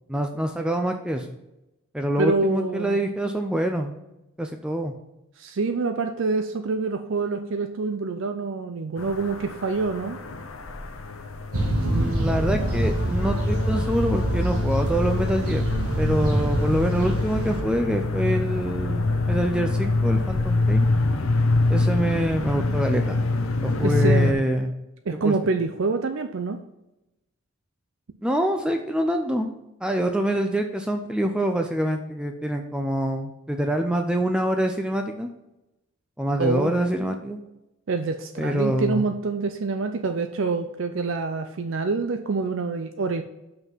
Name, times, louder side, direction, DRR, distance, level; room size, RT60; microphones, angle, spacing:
voice 1, 0.1-1.3 1.9-3.9 4.4-4.9 11.8-15.6 16.0-20.9 21.7-23.2 23.6-24.7 25.1-25.4 28.2-29.6 29.8-35.3 36.2-37.4 38.4-39.0, right 1 dB, 5° right, 4 dB, 0.4 m, -25 dB
voice 2, 2.2-3.0 5.4-10.2 23.8-24.5 25.1-26.6 36.4-36.7 37.9-43.2, right 3 dB, 60° right, 7 dB, 0.5 m, -26 dB
sound 1, 9.0-24.3, left 2 dB, 70° left, 0.7 m, -25 dB
sound 2, 11.5-17.6, right 1 dB, 85° right, 1.5 m, -26 dB
5.9 x 5.5 x 5.5 m, 0.94 s
head